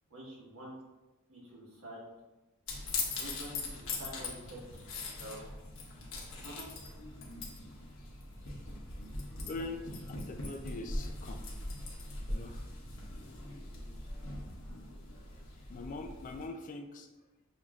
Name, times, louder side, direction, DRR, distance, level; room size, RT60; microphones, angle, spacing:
voice 1, 0.1-0.7 1.3-2.0 3.2-5.5 6.4-6.5, equal, 85° right, -5 dB, 1.4 m, -48 dB
sound 1, 2.7-16.5, left 2 dB, 65° left, 1.0 m, -41 dB
voice 2, 9.5-9.8 10.1-11.4 12.3-12.6 15.7-17.1, left 2 dB, 35° left, 6 dB, 0.3 m, -42 dB
6.3 x 2.6 x 2.4 m, 1.1 s
head